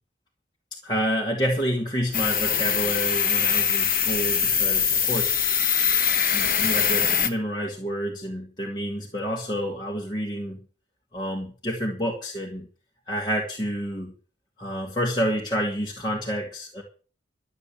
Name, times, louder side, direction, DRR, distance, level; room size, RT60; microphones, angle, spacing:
voice 1, 0.8-5.5 6.3-10.6 11.1-12.7 13.1-14.1 14.6-16.8, equal, 25° left, -2 dB, 2.5 m, -29 dB
sound 1, 2.1-7.3, left 7 dB, 50° left, 1.6 m, -22 dB
13.0 x 8.7 x 7.8 m, 0.39 s
head